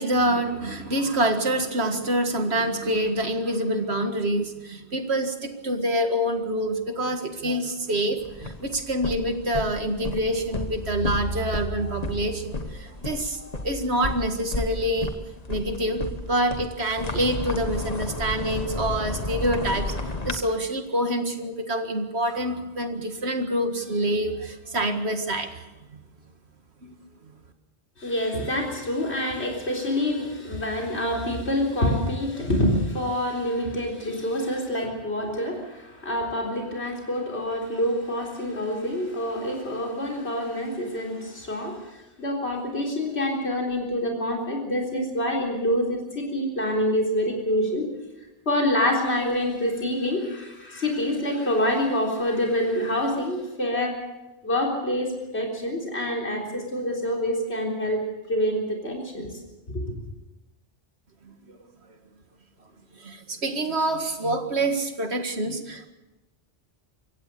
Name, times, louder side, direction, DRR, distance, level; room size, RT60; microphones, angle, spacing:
voice 1, 0.0-15.1 15.5-25.6 25.9-26.0 26.8-26.9 61.2-61.6 63.0-65.9, right 1 dB, 80° right, 6 dB, 2.2 m, -26 dB
sound 1, 8.2-20.4, left 2 dB, 40° left, 1.5 m, -33 dB
voice 2, 28.0-47.9 48.5-53.9 54.4-58.0 58.3-59.3 59.7-59.9, left 1 dB, 90° left, 0 dB, 4.2 m, -26 dB
24.5 x 16.5 x 6.9 m, 1.0 s
omnidirectional pair, 1.1 m